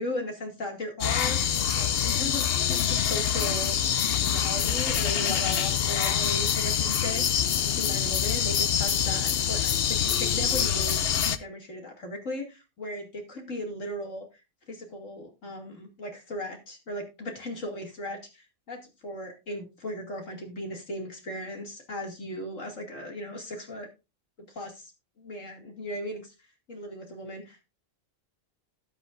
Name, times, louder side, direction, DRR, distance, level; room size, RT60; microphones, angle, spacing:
voice 1, 0.0-1.4 1.7-3.8 4.1-11.0 11.4-14.3 14.7-23.9 24.6-24.9 25.2-26.3 26.7-27.7, left 1 dB, 70° left, 2 dB, 2.9 m, -37 dB
sound 1, 1.0-11.4, left 9 dB, 55° left, 0.8 m, -25 dB
13.0 x 11.0 x 2.6 m, 0.27 s
omnidirectional pair, 1.4 m